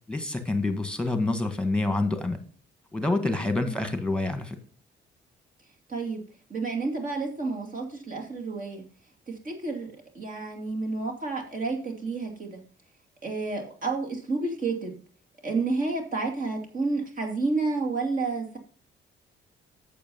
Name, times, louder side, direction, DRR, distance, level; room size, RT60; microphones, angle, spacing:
voice 1, 0.1-2.4 2.9-4.6, left 2 dB, 5° left, 8 dB, 1.8 m, -27 dB
voice 2, 5.9-6.2 6.5-8.8 9.3-12.6 13.2-15.0 15.4-18.6, right 3 dB, 45° right, 1 dB, 2.6 m, -30 dB
8.6 x 7.2 x 5.5 m, 0.42 s
cardioid pair, 90°, 20 cm